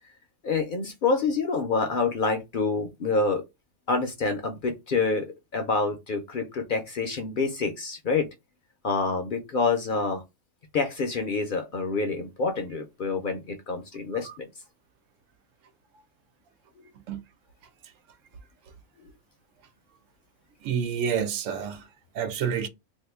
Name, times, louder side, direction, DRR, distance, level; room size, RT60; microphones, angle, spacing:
voice 1, 0.4-3.4 3.9-8.3 8.8-10.2 10.7-14.5, left 4 dB, 55° left, 0.6 m, -27 dB
voice 2, 20.6-21.9 22.1-22.7, right 7 dB, 85° right, 1.0 m, -28 dB
2.7 x 2.5 x 3.4 m
omnidirectional pair, 1.3 m